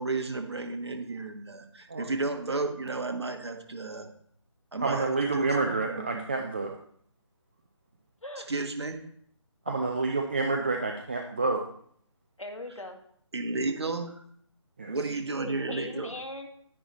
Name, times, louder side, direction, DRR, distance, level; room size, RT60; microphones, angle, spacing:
voice 1, 0.0-4.1 4.7-6.2 8.5-9.0 13.3-14.2 14.9-16.1, right 3 dB, 55° right, 5 dB, 1.4 m, -33 dB
voice 2, 4.8-6.7 9.7-11.6 14.8-14.9, right 3 dB, 20° right, 3 dB, 0.4 m, -28 dB
voice 3, 8.2-8.5 9.7-9.9 12.4-13.0 15.4-16.5, left 2 dB, 85° left, 4 dB, 1.9 m, -39 dB
10.0 x 9.8 x 3.1 m, 0.63 s
figure-of-eight pair, 155°, 16 cm